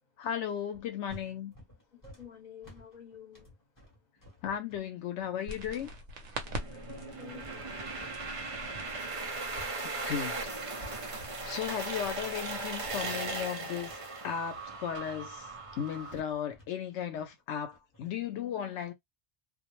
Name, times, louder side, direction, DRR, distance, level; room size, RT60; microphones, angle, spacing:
voice 1, 0.2-1.5 4.4-5.9 10.1-10.4 10.7-11.2 11.4-15.5 15.8-18.9, left 9 dB, 90° left, 0.9 m, -36 dB
sound 1, 0.7-9.0 9.2-18.0, equal, 20° left, 0.8 m, -55 dB
voice 2, 1.9-3.5 6.7-8.1, left 7 dB, 45° left, 1.0 m, -50 dB
sound 2, 5.5-13.1, right 1 dB, 85° right, 1.0 m, -46 dB
sound 3, 6.4-16.2, right 3 dB, 45° right, 0.4 m, -38 dB
2.4 x 2.0 x 3.0 m
omnidirectional pair, 1.2 m